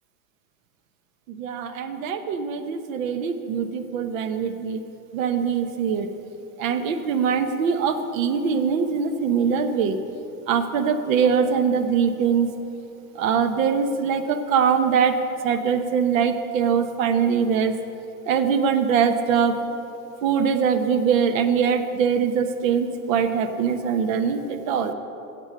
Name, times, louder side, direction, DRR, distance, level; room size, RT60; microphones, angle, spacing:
voice 1, 1.3-4.8 5.1-6.1 6.6-10.0 10.5-12.5 13.1-15.2 15.4-17.7 18.3-19.6 20.2-24.9, right 6 dB, 60° right, 9 dB, 1.1 m, -22 dB
15.0 x 8.1 x 5.5 m, 2.9 s
hypercardioid pair, 130°, 45 cm